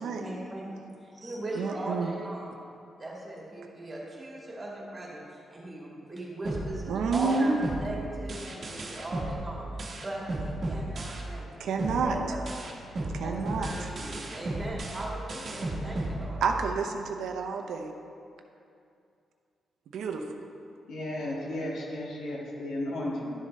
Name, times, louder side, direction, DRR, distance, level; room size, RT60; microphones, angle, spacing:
voice 1, 0.0-2.5 3.0-9.7 9.9-11.7 12.0-12.4 13.2-16.4, right 1 dB, 25° right, -5 dB, 2.2 m, -39 dB
voice 2, 1.6-2.1 6.9-7.5 11.6-12.2 13.1-13.7 16.4-17.9 19.9-20.2, right 5 dB, 90° right, 4 dB, 0.7 m, -29 dB
sound 1, 6.5-11.5 11.8-16.8, right 2 dB, 45° right, 1.3 m, -35 dB
voice 3, 20.9-23.3, left 1 dB, 90° left, -4 dB, 1.8 m, -34 dB
11.5 x 7.4 x 3.2 m, 2.5 s
cardioid pair, 115°, 0 cm